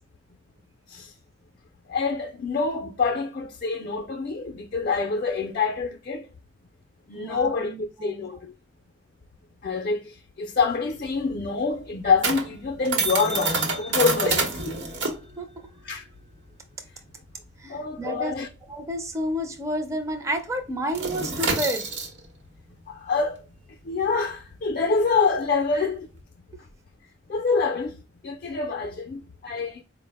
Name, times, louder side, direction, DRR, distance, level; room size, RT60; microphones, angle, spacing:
voice 1, 1.9-6.3 7.1-8.5 9.6-14.9 15.8-16.0 17.7-18.5 22.9-23.4 23.9-26.1 27.3-28.0 28.2-29.8, left 4 dB, 50° left, 0.4 m, -26 dB
voice 2, 7.1-8.3 15.4-15.5 17.6-18.4 18.7-21.9, equal, 15° right, 0.4 m, -30 dB
sound 1, 10.7-19.7 19.9-20.2 20.5-26.2, right 3 dB, 85° right, 0.9 m, -29 dB
4.4 x 2.0 x 3.4 m
head